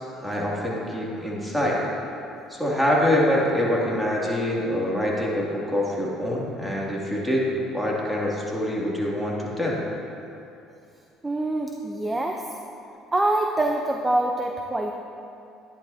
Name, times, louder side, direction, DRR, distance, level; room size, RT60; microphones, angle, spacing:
voice 1, 0.2-1.8 2.5-7.5 7.7-9.8, left 1 dB, ahead, -5 dB, 2.5 m, -25 dB
voice 2, 11.2-12.4 13.1-14.9, right 1 dB, 15° right, 2 dB, 0.7 m, -25 dB
11.5 x 10.5 x 2.8 m, 2.7 s
supercardioid pair, 80°, 0 cm